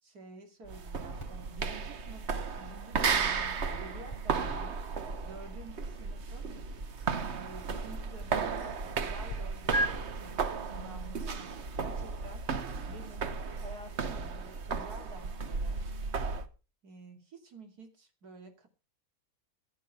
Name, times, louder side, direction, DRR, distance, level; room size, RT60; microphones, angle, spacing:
voice 1, 0.0-4.8 5.2-6.5 7.2-10.5 10.7-12.4 12.9-15.8 16.8-18.7, right 3 dB, 80° right, 4 dB, 3.1 m, -50 dB
sound 1, 0.7-16.5, right 5 dB, 50° right, 1.3 m, -35 dB
sound 2, 1.2-9.4 9.7-9.9, equal, 20° left, 2.8 m, -41 dB
15.5 x 8.3 x 5.7 m, 0.33 s
omnidirectional pair, 1.6 m